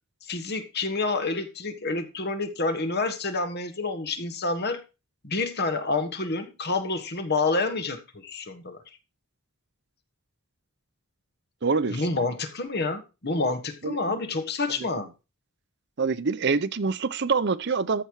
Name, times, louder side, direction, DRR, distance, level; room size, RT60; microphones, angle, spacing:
voice 1, 0.2-4.8 5.2-8.8 11.9-15.1, left 3 dB, 45° left, 1.4 m, -28 dB
voice 2, 11.6-12.0 13.8-14.0 14.8-14.9 16.0-18.0, right 4 dB, 50° right, 0.6 m, -25 dB
14.0 x 5.7 x 4.7 m
head